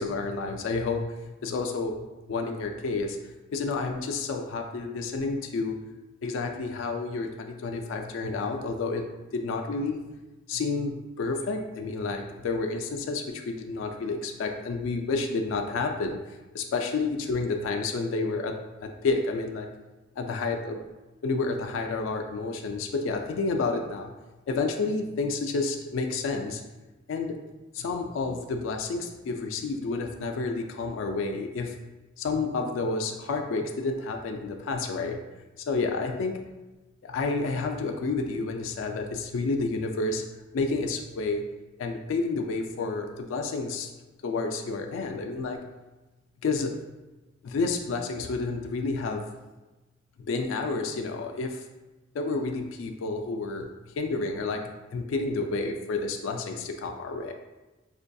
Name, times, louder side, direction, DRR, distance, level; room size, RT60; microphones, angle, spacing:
voice 1, 0.0-3.2 3.5-5.7 6.2-10.0 10.5-16.2 16.5-19.7 20.2-20.8 21.2-24.1 24.5-26.6 27.1-27.4 27.7-31.7 32.2-35.2 35.7-36.4 37.1-40.2 40.5-41.4 41.8-43.9 44.2-45.6 46.4-46.7 47.4-49.2 50.3-51.6 52.1-53.7 54.0-57.3, left 3 dB, 80° left, 3 dB, 0.3 m, -30 dB
4.9 x 2.6 x 2.2 m, 1.1 s
head